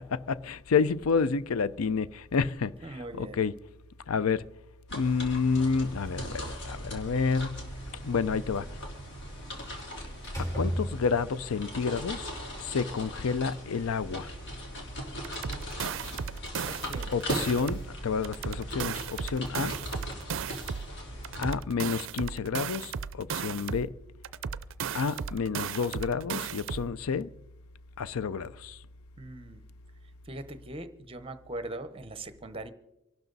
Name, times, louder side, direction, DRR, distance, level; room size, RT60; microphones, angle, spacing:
voice 1, 0.1-3.6 4.1-4.5 4.9-7.7 8.0-8.7 10.4-12.3 12.6-14.3 17.1-19.8 21.4-23.9 24.9-27.3 28.0-28.8, left 5 dB, 85° left, 0.5 m, -29 dB
voice 2, 2.8-3.4 15.1-15.4 16.6-17.1 29.2-29.6 30.3-32.7, right 2 dB, 25° right, 1.0 m, -41 dB
sound 1, 4.9-21.6, equal, 60° left, 3.1 m, -39 dB
Slam, 6.4-7.4 9.6-9.8 10.2-11.5, equal, 15° left, 4.3 m, -34 dB
sound 2, 15.2-17.9 18.2-20.9 21.2-23.9 24.2-26.9, right 7 dB, 65° right, 0.5 m, -35 dB
25.0 x 12.0 x 4.0 m
head